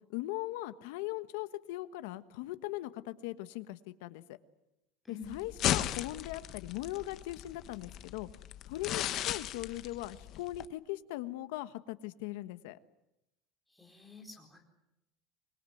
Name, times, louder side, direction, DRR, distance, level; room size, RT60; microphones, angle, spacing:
voice 1, 0.1-4.4 5.1-8.3 8.7-12.8, left 16 dB, 80° left, 12 dB, 1.4 m, -39 dB
sound 1, 5.2-10.7, left 12 dB, 40° left, 1.1 m, -36 dB
voice 2, 13.7-14.6, left 5 dB, ahead, 1 dB, 4.1 m, -48 dB
25.0 x 21.5 x 9.4 m, 0.90 s
cardioid pair, 170°, 0 cm